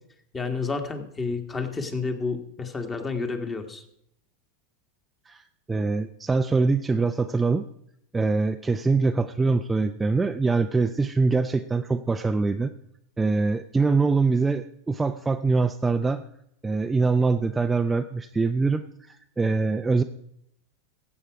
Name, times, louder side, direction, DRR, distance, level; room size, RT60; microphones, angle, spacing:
voice 1, 0.3-3.8, left 4 dB, 20° left, 6 dB, 1.6 m, -30 dB
voice 2, 5.3-7.6 8.1-12.7 13.2-16.2 16.6-20.0, right 4 dB, 10° right, 7 dB, 0.5 m, -24 dB
15.5 x 7.6 x 4.8 m, 0.74 s
hypercardioid pair, 115°, 0 cm